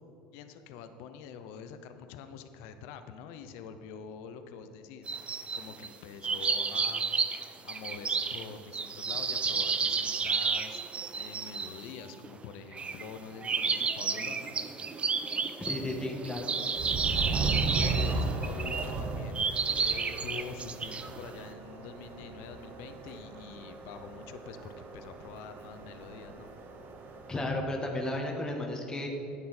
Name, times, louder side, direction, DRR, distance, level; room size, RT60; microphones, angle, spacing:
voice 1, 0.3-5.1 5.5-10.8 11.1-14.6 17.4-26.5, left 6 dB, 70° left, 9 dB, 0.8 m, -46 dB
sound 1, 5.1-5.9 6.2-11.8 12.2-12.3 12.7-13.1 13.4-19.0 19.3-21.3, right 5 dB, 25° right, 0.6 m, -31 dB
sound 2, 10.6-12.7 12.9-13.2 13.6-14.1 14.5-21.4, equal, 10° right, 1.4 m, -52 dB
voice 2, 15.6-16.6 27.3-29.1, left 1 dB, 15° left, 1 dB, 1.6 m, -33 dB
Subway metro underground, 16.7-27.4, right 3 dB, 50° right, 1.3 m, -36 dB
10.5 x 9.1 x 4.4 m, 2.9 s
supercardioid pair, 90°, 4 cm